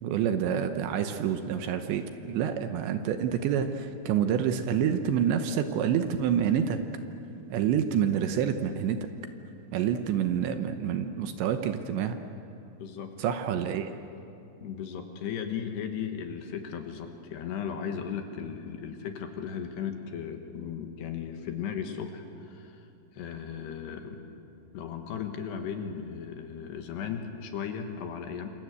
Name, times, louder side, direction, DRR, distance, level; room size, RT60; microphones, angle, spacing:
voice 1, 0.0-6.8 7.5-9.0 9.7-12.2 13.2-13.9, right 8 dB, 75° right, 8 dB, 3.0 m, -27 dB
voice 2, 12.8-13.1 14.6-24.2 24.7-28.5, left 7 dB, 65° left, 5 dB, 3.2 m, -36 dB
27.0 x 27.0 x 8.2 m, 2.7 s
omnidirectional pair, 5.7 m